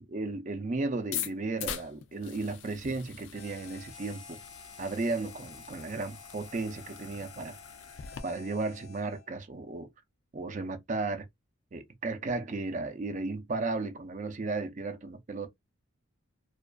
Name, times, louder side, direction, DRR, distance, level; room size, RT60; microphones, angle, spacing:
voice 1, 0.1-4.4 4.8-7.6 8.2-9.9 10.3-11.3 11.7-15.5, right 3 dB, 35° right, 0.4 m, -34 dB
sound 1, 1.0-8.2, left 9 dB, 60° left, 0.4 m, -43 dB
Harmonica, 3.3-9.3, left 4 dB, 75° left, 0.9 m, -50 dB
2.3 x 2.3 x 2.4 m
head